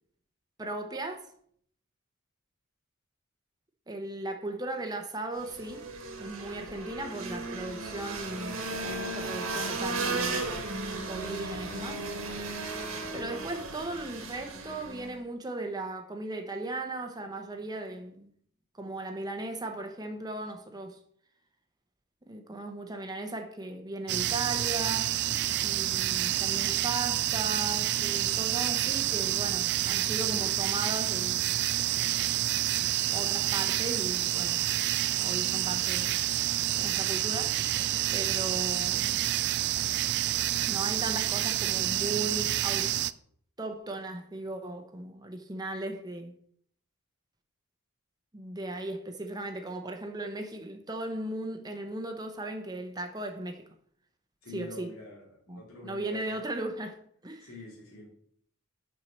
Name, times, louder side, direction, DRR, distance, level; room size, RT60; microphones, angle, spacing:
voice 1, 0.6-1.3 3.9-5.9 6.2-10.5 11.0-12.0 13.1-18.3 18.7-21.0 22.2-25.1 25.6-31.5 33.1-34.6 35.2-36.2 36.8-37.7 38.1-39.2 40.7-42.9 43.6-46.3 48.3-53.7 54.5-54.9 55.5-57.5, right 2 dB, 20° right, 0.9 m, -37 dB
sound 1, 5.3-15.2, right 3 dB, 70° right, 1.7 m, -35 dB
sound 2, 24.1-43.1, right 14 dB, 55° right, 0.3 m, -28 dB
voice 2, 54.4-56.4 57.4-58.1, left 2 dB, 75° left, 3.3 m, -46 dB
7.5 x 4.6 x 6.7 m
head